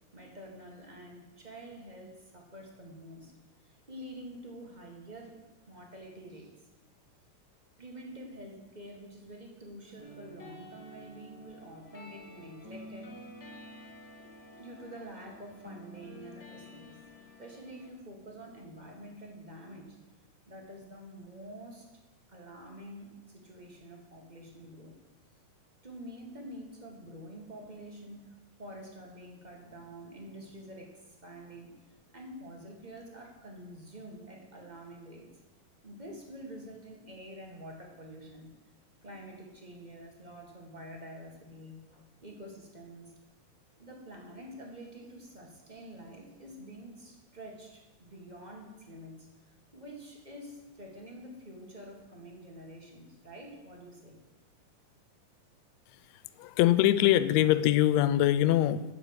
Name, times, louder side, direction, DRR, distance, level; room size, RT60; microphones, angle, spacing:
voice 1, 0.1-3.3 3.6-5.4 5.7-6.6 7.8-13.2 14.6-17.0 17.4-20.0 20.5-22.0 22.3-25.0 25.8-31.8 32.1-35.3 35.8-38.5 39.0-43.1 43.8-54.2, right 1 dB, 20° right, 1 dB, 1.2 m, -47 dB
sound 1, 10.0-17.9, left 1 dB, 40° left, 1.8 m, -50 dB
voice 2, 56.4-58.8, left 13 dB, 85° left, 14 dB, 1.5 m, -23 dB
11.5 x 7.4 x 8.1 m, 1.1 s
omnidirectional pair, 3.7 m